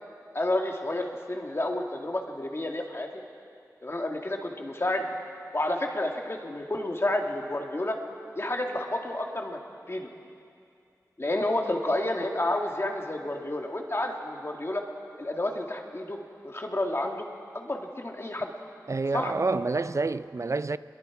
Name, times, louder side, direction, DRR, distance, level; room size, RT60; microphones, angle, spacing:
voice 1, 0.3-3.1 3.8-5.1 5.5-8.0 8.4-9.6 9.9-10.1 11.2-14.8 15.2-16.2 16.4-17.3 17.5-18.5 19.1-19.3, left 1 dB, 40° left, 2.1 m, -30 dB
voice 2, 18.9-20.8, right 3 dB, 50° right, 0.5 m, -28 dB
26.0 x 22.0 x 4.8 m
wide cardioid pair, 70°, 7 cm